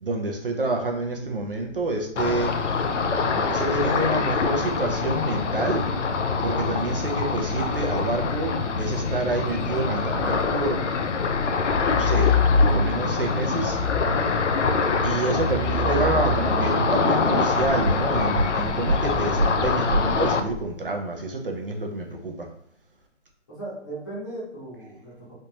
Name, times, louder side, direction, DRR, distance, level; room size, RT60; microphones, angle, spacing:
voice 1, 0.0-2.6 2.9-5.8 6.4-8.5 8.8-10.8 11.9-12.3 12.6-13.8 15.0-22.5, right 2 dB, 50° right, 2 dB, 0.6 m, -28 dB
Ocean, 2.2-20.4, left 4 dB, 75° left, 0.6 m, -25 dB
sound 1, 11.7-13.1 13.6-20.6, left 2 dB, 20° right, 1.0 m, -26 dB
voice 2, 23.5-25.3, right 1 dB, 15° left, -8 dB, 0.9 m, -37 dB
3.3 x 2.8 x 2.9 m, 0.68 s
figure-of-eight pair, 160°, 36 cm